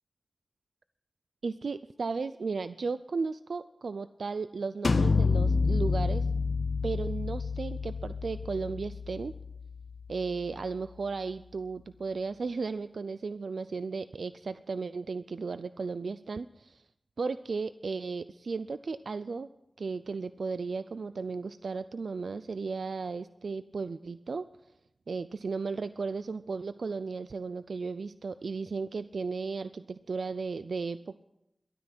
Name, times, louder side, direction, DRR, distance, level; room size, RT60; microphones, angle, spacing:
voice 1, 1.4-6.3 6.8-9.3 10.1-16.8 17.2-19.5 19.8-24.4 25.1-31.2, right 4 dB, 85° right, 13 dB, 0.4 m, -35 dB
sound 1, 4.8-10.5, left 4 dB, 65° left, 0.8 m, -29 dB
13.0 x 12.0 x 5.9 m, 0.84 s
wide cardioid pair, 75°, 0 cm